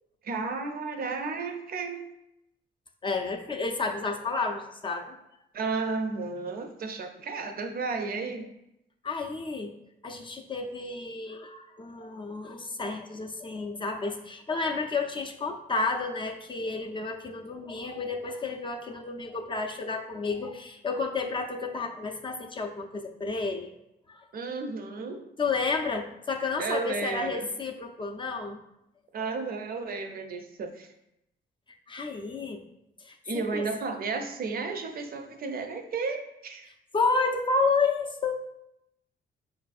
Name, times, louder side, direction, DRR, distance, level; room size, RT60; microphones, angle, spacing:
voice 1, 0.2-2.1 5.5-8.5 24.3-25.2 26.6-27.5 29.1-30.9 33.2-36.7, right 4 dB, 50° right, 6 dB, 0.4 m, -33 dB
voice 2, 3.0-5.2 9.0-9.7 10.0-23.7 24.1-24.3 25.4-28.6 31.9-32.6 33.0-33.7 36.9-38.4, left 4 dB, 25° left, 2 dB, 0.3 m, -31 dB
4.6 x 2.5 x 2.3 m, 0.83 s
cardioid pair, 90°, 20 cm